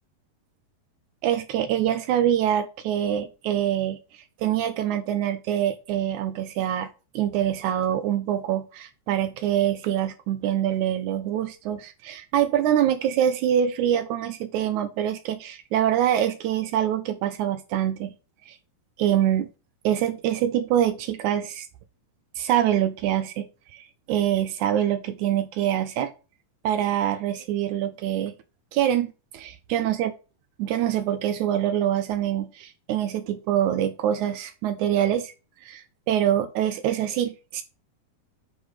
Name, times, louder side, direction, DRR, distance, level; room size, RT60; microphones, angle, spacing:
voice 1, 1.2-4.0 4.4-6.9 7.2-18.1 18.5-18.6 19.0-19.5 19.8-21.7 22.4-26.1 26.6-28.3 28.7-30.1 30.6-35.3 35.6-37.6, right 10 dB, 75° right, 1.9 m, -25 dB
8.1 x 4.1 x 4.8 m
omnidirectional pair, 3.9 m